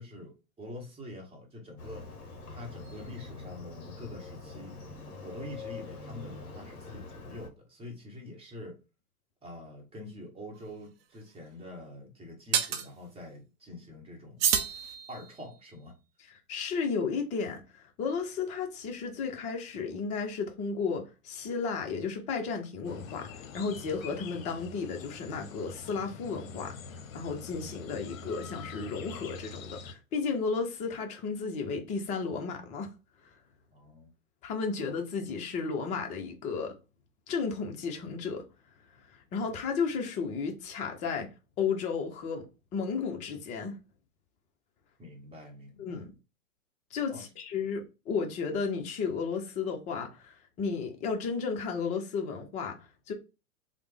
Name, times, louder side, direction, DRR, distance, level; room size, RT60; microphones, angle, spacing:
voice 1, 0.0-2.1 2.5-4.7 5.2-8.8 9.4-14.5 15.1-16.0 33.7-34.1 45.0-46.0 47.1-47.3, left 1 dB, 15° right, 1.0 m, -45 dB
Motorcycle, 1.8-7.5, left 3 dB, 35° left, 0.9 m, -44 dB
sound 1, 10.6-10.7 12.5-12.9 14.4-15.5, right 8 dB, 45° right, 0.6 m, -29 dB
voice 2, 16.5-23.3 23.5-26.7 27.1-32.9 34.4-36.7 37.3-38.4 39.3-41.3 41.6-42.4 42.7-43.8 45.8-46.1 46.9-52.8 53.1-53.2, left 5 dB, 20° left, 0.4 m, -33 dB
sound 2, 22.8-29.9, left 5 dB, 65° left, 0.7 m, -45 dB
3.3 x 2.0 x 3.2 m
hypercardioid pair, 110°, 43 cm